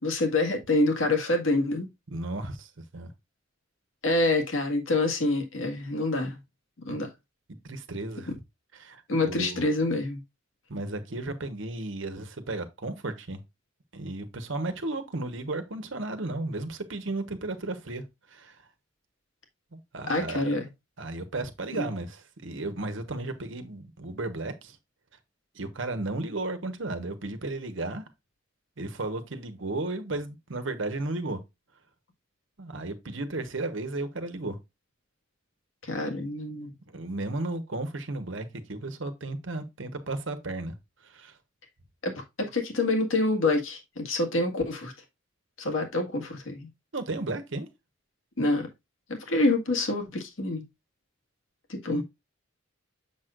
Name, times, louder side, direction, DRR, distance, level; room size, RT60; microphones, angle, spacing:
voice 1, 0.0-1.9 4.0-6.4 6.8-7.1 9.1-10.2 20.1-20.6 21.7-21.9 35.8-36.7 42.0-44.9 45.6-46.7 48.4-48.7 49.1-50.6 51.7-52.0, left 2 dB, 90° left, 1.8 m, -26 dB
voice 2, 2.1-3.1 6.9-7.0 7.6-8.4 8.7-9.9 10.7-13.4 13.9-18.0 18.3-18.5 19.7-20.5 21.0-24.8 25.5-28.0 28.8-31.4 32.6-34.6 36.9-40.7 41.1-41.3 46.9-47.7 51.9-52.0, right 2 dB, 70° right, 1.1 m, -34 dB
7.1 x 6.3 x 2.4 m
head